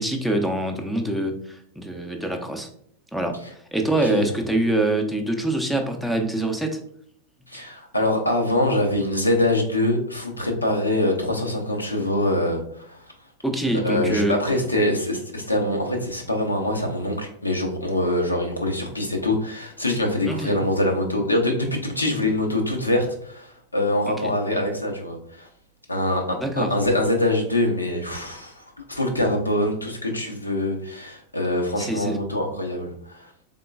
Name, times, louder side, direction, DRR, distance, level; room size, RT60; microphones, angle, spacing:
voice 1, 0.0-2.7 3.1-3.4 3.7-6.8 13.4-14.4 20.3-20.5 24.1-24.3 26.4-26.7 31.8-32.2, right 1 dB, ahead, 4 dB, 0.5 m, -25 dB
voice 2, 7.5-13.1 13.7-25.5 25.9-33.3, left 1 dB, 85° left, 2 dB, 0.7 m, -24 dB
3.7 x 3.6 x 2.3 m, 0.64 s
figure-of-eight pair, 90°, 0 cm